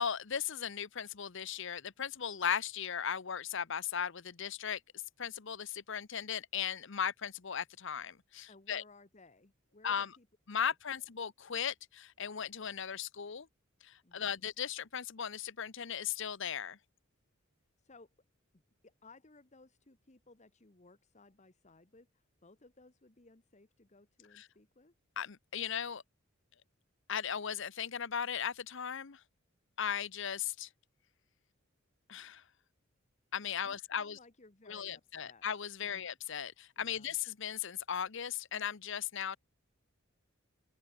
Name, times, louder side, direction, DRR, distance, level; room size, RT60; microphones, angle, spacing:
voice 1, 0.0-4.8 5.2-8.8 9.8-10.1 10.5-13.5 13.8-16.8 24.3-24.5 25.2-26.0 27.1-29.2 29.8-30.7 32.1-32.4 33.3-34.2 34.7-39.4, left 8 dB, 60° left, 0.8 m, -37 dB
voice 2, 8.5-10.3 10.9-11.0 14.0-14.5 17.8-18.1 18.5-24.9 33.6-35.5 35.8-36.1 36.8-37.2, left 3 dB, 35° left, 1.3 m, -60 dB
open air
head